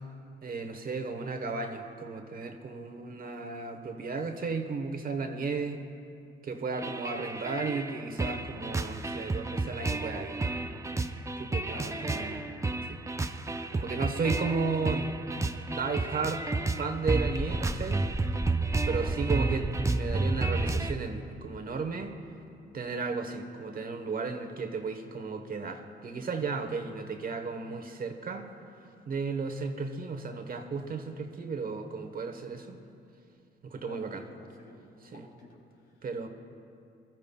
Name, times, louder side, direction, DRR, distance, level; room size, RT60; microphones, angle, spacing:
voice 1, 0.4-5.8 6.4-10.4 11.4-12.4 12.9-13.0 13.7-15.1 15.7-16.4 16.8-18.3 18.9-22.1 22.7-28.5 29.1-32.8 33.6-34.2 35.1-35.2 36.0-36.3, right 4 dB, 45° right, 6 dB, 1.1 m, -34 dB
sound 1, 6.7-20.9, right 2 dB, 15° right, 0.5 m, -31 dB
voice 2, 11.7-12.4 33.8-34.8 35.0-36.0, left 2 dB, 85° left, -2 dB, 3.0 m, -51 dB
22.0 x 13.5 x 2.3 m, 2.5 s
cardioid pair, 90°, 20 cm